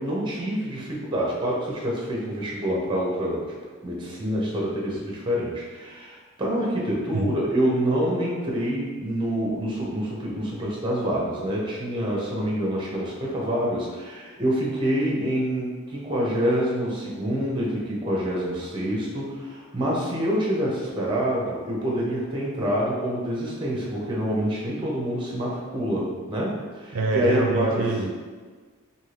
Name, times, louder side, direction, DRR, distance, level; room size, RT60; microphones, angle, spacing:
voice 1, 0.0-3.6 3.8-27.9, equal, 20° right, -3 dB, 0.6 m, -26 dB
voice 2, 26.9-28.1, right 3 dB, 65° right, -1 dB, 0.4 m, -25 dB
2.6 x 2.6 x 3.2 m, 1.4 s
head